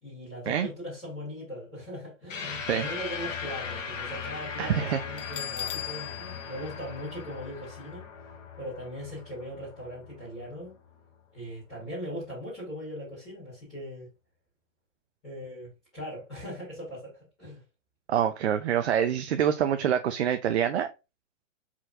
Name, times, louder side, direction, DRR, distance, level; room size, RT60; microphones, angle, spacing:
voice 1, 0.0-8.1 8.6-10.7 11.3-14.1 15.2-17.6, equal, 5° left, 0.4 m, -40 dB
sound 1, 2.3-11.0, left 6 dB, 80° left, 1.6 m, -39 dB
voice 2, 4.6-5.0 18.1-20.9, right 9 dB, 60° right, 0.6 m, -26 dB
Bell, 5.2-7.9, left 11 dB, 45° left, 0.7 m, -39 dB
4.5 x 4.2 x 2.5 m
hypercardioid pair, 170°, 38 cm